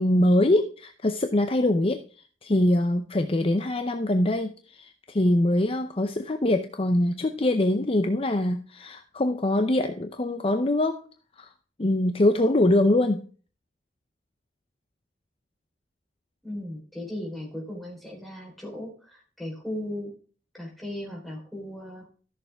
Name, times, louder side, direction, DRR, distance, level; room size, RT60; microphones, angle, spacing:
voice 1, 0.0-2.0 2.4-11.0 11.4-11.5 11.8-13.3, left 1 dB, 30° left, 7 dB, 0.6 m, -23 dB
voice 2, 16.4-20.1 20.5-22.1, left 1 dB, ahead, -2 dB, 4.0 m, -37 dB
13.5 x 6.8 x 3.5 m, 0.40 s
head